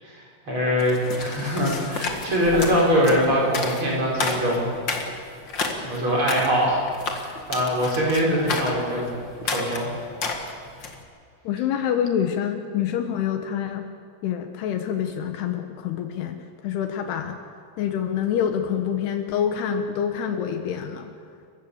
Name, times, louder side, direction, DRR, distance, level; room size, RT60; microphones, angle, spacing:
voice 1, 0.0-4.7 5.1-5.2 5.8-6.8 7.2-9.1 9.4-9.9, equal, 30° right, -4 dB, 5.7 m, -23 dB
sound 1, 0.8-11.0, left 3 dB, 50° left, 1.3 m, -31 dB
voice 2, 11.5-13.9 14.2-17.4 17.8-21.1, left 8 dB, 75° left, 6 dB, 3.0 m, -26 dB
29.0 x 15.5 x 7.1 m, 2.2 s
omnidirectional pair, 5.0 m